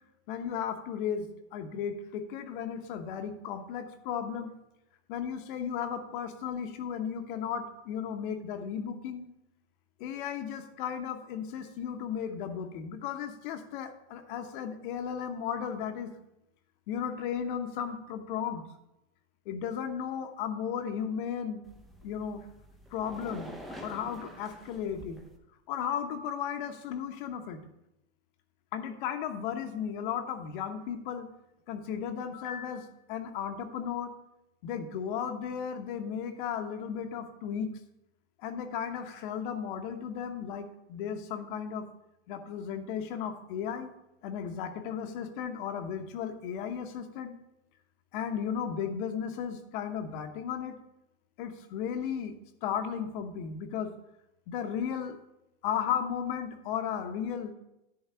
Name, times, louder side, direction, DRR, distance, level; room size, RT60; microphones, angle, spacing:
voice 1, 0.3-4.5 5.1-9.3 10.0-16.1 16.9-18.6 19.5-21.6 22.0-22.5 22.9-23.5 23.8-25.2 25.7-27.6 28.7-31.3 31.7-34.1 34.6-37.7 38.4-41.9 42.3-43.9 44.2-47.3 48.1-50.7 51.4-52.3 52.6-53.9 54.5-55.2 55.6-57.5, left 8 dB, 50° left, 7 dB, 1.1 m, -35 dB
sound 1, 21.6-25.4, equal, ahead, 0.7 m, -47 dB
10.5 x 4.0 x 6.9 m, 0.89 s
hypercardioid pair, 140°, 33 cm